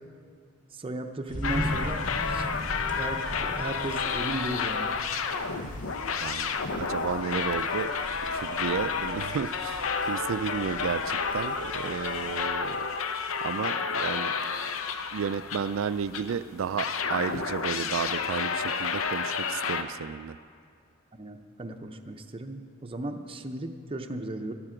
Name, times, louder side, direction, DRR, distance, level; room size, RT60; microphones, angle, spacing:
voice 1, 0.7-4.9 21.1-24.6, right 2 dB, 25° right, 4 dB, 0.6 m, -36 dB
sound 1, 1.3-12.5, equal, 40° left, 1.8 m, -40 dB
sound 2, 1.4-16.3 16.8-19.8, left 5 dB, 80° left, 0.7 m, -31 dB
voice 2, 6.2-7.9 8.3-12.9 13.4-14.3 15.1-20.4, right 6 dB, 70° right, 15 dB, 0.4 m, -32 dB
12.5 x 12.0 x 5.0 m, 2.3 s
head